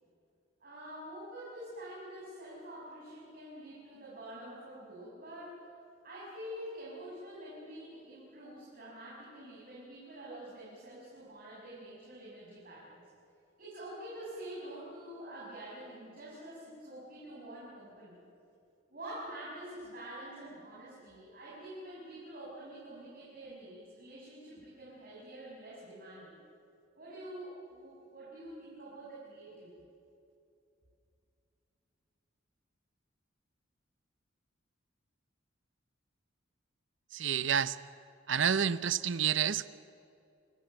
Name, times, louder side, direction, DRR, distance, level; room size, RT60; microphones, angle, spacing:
voice 1, 0.6-5.7 6.0-13.0 13.6-18.2 18.9-26.4 27.0-29.9, right 1 dB, 45° right, -7 dB, 6.7 m, -47 dB
voice 2, 37.1-37.8 38.3-39.7, right 8 dB, 65° right, 16 dB, 0.7 m, -29 dB
29.5 x 14.5 x 9.0 m, 2.6 s
head